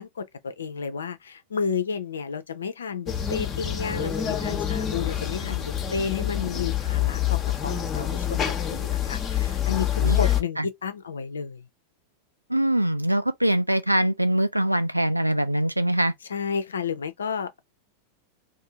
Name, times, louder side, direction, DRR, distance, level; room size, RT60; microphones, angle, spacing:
voice 1, 0.0-9.9 10.2-11.6 16.3-17.6, left 6 dB, 70° left, 0.5 m, -31 dB
sound 1, 3.1-10.4, left 10 dB, 25° left, 0.8 m, -26 dB
voice 2, 12.5-16.1, right 1 dB, 85° right, 0.3 m, -23 dB
2.7 x 2.6 x 3.5 m
figure-of-eight pair, 90°, 0 cm